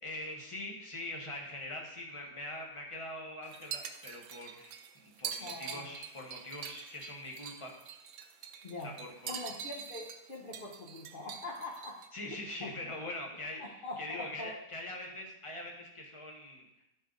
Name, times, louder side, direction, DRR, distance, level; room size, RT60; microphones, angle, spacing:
voice 1, 0.0-7.7 8.8-9.4 12.1-16.8, left 1 dB, 20° left, 0 dB, 1.2 m, -43 dB
sound 1, 3.4-12.1, right 8 dB, 80° right, 1.2 m, -44 dB
voice 2, 5.4-5.9 8.6-8.9 9.3-12.0 12.6-12.7 13.6-14.6, left 2 dB, 40° left, -2 dB, 0.9 m, -43 dB
11.5 x 4.9 x 3.9 m, 0.86 s
omnidirectional pair, 1.9 m